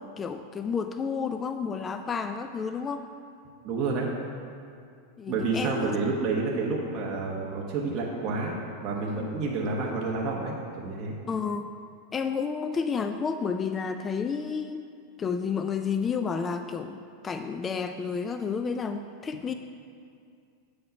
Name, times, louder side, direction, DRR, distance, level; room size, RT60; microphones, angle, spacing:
voice 1, 0.0-3.1 5.2-6.0 9.1-9.5 11.3-11.7 12.1-14.9 15.2-19.5, left 5 dB, 20° left, 7 dB, 0.3 m, -31 dB
voice 2, 3.6-4.1 5.3-8.5 8.8-11.1, right 3 dB, 35° right, -3 dB, 1.1 m, -29 dB
8.1 x 5.5 x 5.2 m, 2.3 s
supercardioid pair, 140°, 0 cm